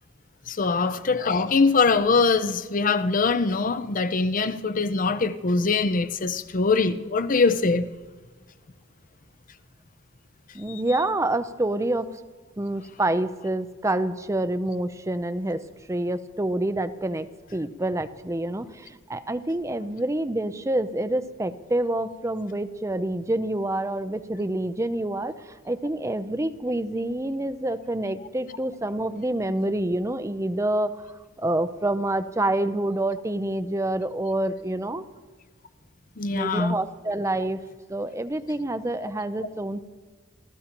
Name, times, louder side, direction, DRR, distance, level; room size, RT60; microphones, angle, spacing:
voice 1, 0.5-7.9 10.7-10.8 36.2-36.8, left 4 dB, 40° left, 0.6 m, -23 dB
voice 2, 10.5-12.1 12.6-15.6 15.9-17.3 17.5-35.0 36.3-37.6 37.9-39.8, right 1 dB, 15° right, 0.6 m, -27 dB
28.0 x 14.0 x 3.0 m
head